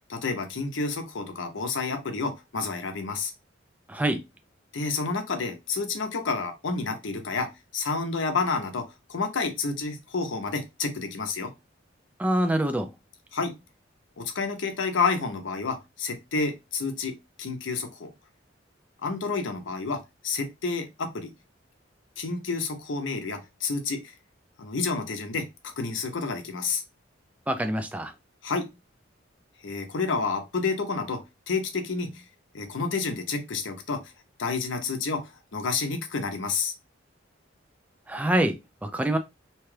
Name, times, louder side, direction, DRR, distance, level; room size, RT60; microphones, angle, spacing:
voice 1, 0.1-3.3 4.7-11.5 13.3-13.6 14.2-18.1 19.0-21.3 22.2-24.1 24.6-26.8 28.4-28.7 29.6-32.2 32.5-34.1 34.4-36.7, left 4 dB, 75° left, 0.7 m, -30 dB
voice 2, 3.9-4.2 12.2-12.9 27.5-28.1 38.1-39.2, right 1 dB, 10° right, 0.3 m, -25 dB
2.8 x 2.3 x 3.2 m
head